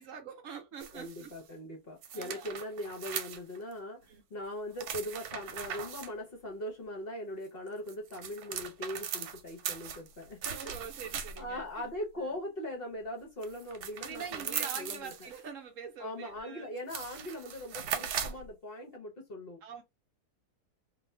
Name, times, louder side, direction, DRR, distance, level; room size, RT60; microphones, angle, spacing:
voice 1, 0.0-1.3 2.1-2.5 4.1-4.2 10.5-11.9 12.2-12.3 14.0-16.7 19.6-19.8, right 6 dB, 65° right, 0.9 m, -45 dB
sound 1, 0.8-1.4 2.0-3.7 4.7-6.1 7.7-11.6 13.4-15.4 16.4-16.5 16.8-18.5, right 8 dB, 85° right, 1.2 m, -39 dB
voice 2, 0.9-10.6 11.0-11.1 11.4-15.1 16.0-19.6, left 1 dB, 45° left, 0.8 m, -40 dB
2.7 x 2.4 x 3.2 m
omnidirectional pair, 1.6 m